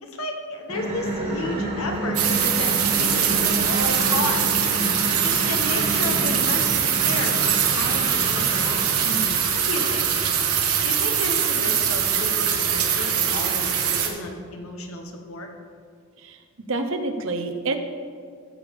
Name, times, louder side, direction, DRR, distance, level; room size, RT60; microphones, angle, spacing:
voice 1, 0.0-4.6 5.2-8.9 9.7-10.1 10.8-15.5, left 2 dB, 75° left, 3 dB, 1.1 m, -32 dB
sound 1, 0.7-9.2, right 1 dB, 25° right, 1.9 m, -30 dB
sound 2, 2.1-14.1, right 8 dB, 85° right, 1.3 m, -22 dB
voice 2, 9.0-9.4 16.2-16.4 16.7-17.8, right 2 dB, 60° right, 5 dB, 0.9 m, -28 dB
14.5 x 6.8 x 3.6 m, 2.1 s
head